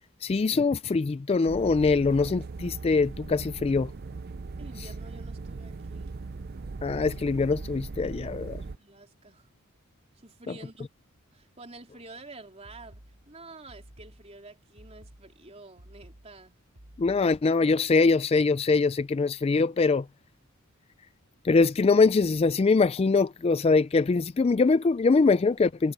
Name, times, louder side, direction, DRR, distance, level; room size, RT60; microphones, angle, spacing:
voice 1, 0.2-3.9 6.8-8.6 17.0-20.1 21.4-25.9, left 4 dB, 25° left, 0.3 m, -23 dB
sound 1, 1.5-8.8, right 3 dB, 45° right, 0.5 m, -39 dB
voice 2, 4.6-6.1 8.8-9.5 10.2-10.9 11.3-16.6, right 2 dB, 30° right, 3.8 m, -49 dB
sound 2, 12.6-17.6, right 1 dB, 70° right, 2.3 m, -53 dB
head